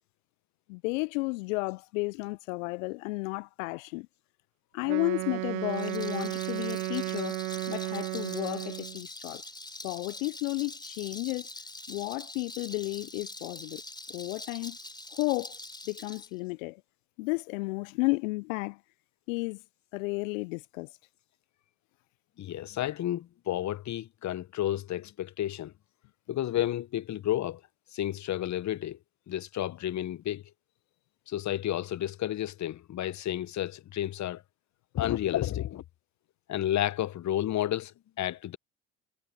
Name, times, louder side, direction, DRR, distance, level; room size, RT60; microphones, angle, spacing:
voice 1, 0.7-4.1 4.7-9.4 9.8-11.5 11.9-13.8 14.1-14.8 15.1-15.6 15.9-16.8 17.2-18.8 19.3-19.6 19.9-21.0, left 28 dB, 70° left, 0.6 m, -33 dB
Wind instrument woodwind instrument, 4.8-9.0, right 26 dB, 75° right, 1.1 m, -34 dB
Rattle, 5.6-16.3, left 2 dB, 10° left, 4.2 m, -44 dB
voice 2, 22.4-25.7 26.3-27.6 27.9-29.0 29.3-30.4 31.3-34.4 34.9-35.8 36.5-38.6, left 12 dB, 45° left, 1.0 m, -31 dB
hypercardioid pair, 60°, 41 cm